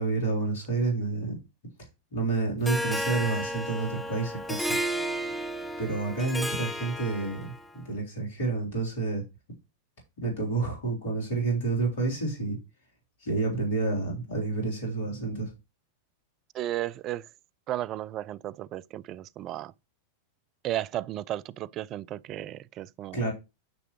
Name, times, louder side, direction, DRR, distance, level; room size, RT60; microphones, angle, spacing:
voice 1, 0.0-1.4 2.1-4.8 5.8-9.2 10.2-12.6 13.2-15.5 23.1-23.3, right 3 dB, 60° left, 3.8 m, -29 dB
Harp, 2.7-7.7, equal, 5° left, 1.1 m, -32 dB
voice 2, 16.5-17.3 17.7-19.7 20.6-23.3, right 13 dB, 35° right, 0.4 m, -34 dB
9.5 x 6.0 x 3.1 m
figure-of-eight pair, 90°, 0 cm